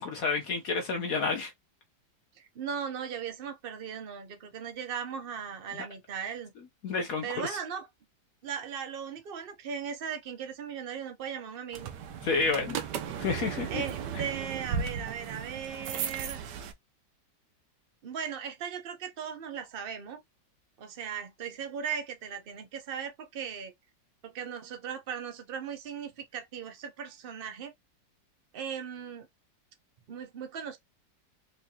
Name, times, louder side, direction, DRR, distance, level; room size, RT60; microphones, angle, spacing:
voice 1, 0.0-1.5 6.8-7.2 12.2-12.8 13.2-13.8, left 4 dB, 60° left, 1.1 m, -29 dB
voice 2, 2.4-6.5 7.2-7.9 8.4-11.9 13.7-16.4 18.0-20.2 20.8-23.7 24.2-27.7 28.5-29.3 30.1-30.8, right 7 dB, 60° right, 0.6 m, -38 dB
sound 1, 11.7-16.7, right 7 dB, 75° right, 1.3 m, -36 dB
4.6 x 2.6 x 2.8 m
omnidirectional pair, 1.9 m